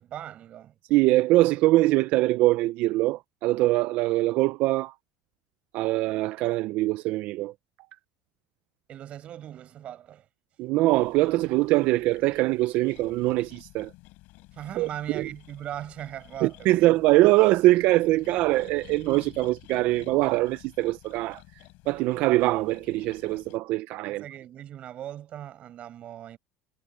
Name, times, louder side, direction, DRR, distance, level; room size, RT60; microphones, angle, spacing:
voice 1, 0.0-0.7 8.9-10.3 14.5-16.9 24.1-26.4, right 11 dB, 35° right, 6.2 m, -39 dB
voice 2, 0.9-4.9 5.7-7.5 10.6-13.9 14.8-14.9 15.1-15.3 16.4-21.4 21.9-24.2, right 18 dB, 50° right, 0.4 m, -23 dB
sound 1, 10.9-23.6, left 22 dB, 60° left, 4.4 m, -51 dB
cardioid pair, 165°, 4 cm